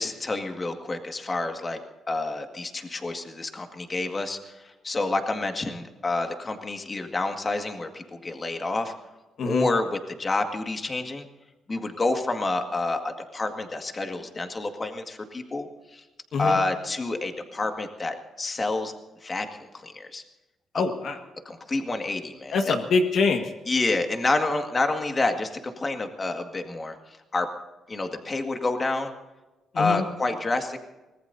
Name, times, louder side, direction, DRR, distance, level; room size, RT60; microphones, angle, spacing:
voice 1, 0.0-1.8 2.1-8.9 9.5-11.3 11.7-16.0 16.4-18.9 19.2-20.2 21.5-22.8 23.7-27.0 27.3-27.5 27.9-29.1 29.8-30.8, left 2 dB, 30° left, 5 dB, 1.9 m, -28 dB
voice 2, 20.7-21.2 22.5-23.5 29.7-30.0, left 4 dB, 65° left, 5 dB, 1.7 m, -24 dB
24.5 x 19.0 x 2.8 m, 1.1 s
cardioid pair, 100°, 0 cm